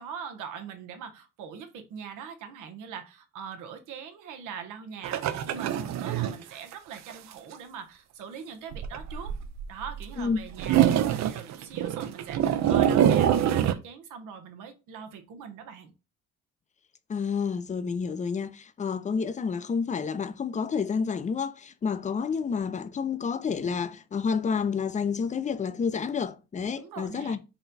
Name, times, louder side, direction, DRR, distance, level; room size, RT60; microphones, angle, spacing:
voice 1, 0.0-9.3 9.7-15.9 26.8-27.4, right 7 dB, 90° right, 0.9 m, -42 dB
sound 1, 5.0-6.4 6.7-6.8 7.1-7.2 8.7-10.0 10.3-13.7, right 10 dB, 65° right, 0.5 m, -24 dB
voice 2, 17.1-27.4, left 6 dB, 25° left, 0.4 m, -29 dB
4.0 x 2.2 x 4.0 m
cardioid pair, 90°, 30 cm